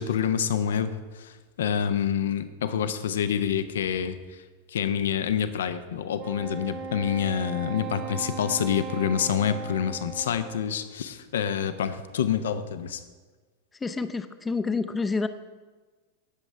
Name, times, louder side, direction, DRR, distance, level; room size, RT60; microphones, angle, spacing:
voice 1, 0.0-4.2 4.7-13.0, left 8 dB, 60° left, 11 dB, 0.7 m, -27 dB
Wind instrument woodwind instrument, 6.2-10.8, right 5 dB, 30° right, 1.0 m, -37 dB
voice 2, 13.8-15.3, left 4 dB, 15° left, 11 dB, 0.6 m, -28 dB
18.0 x 7.2 x 3.3 m, 1.4 s
figure-of-eight pair, 90°, 0 cm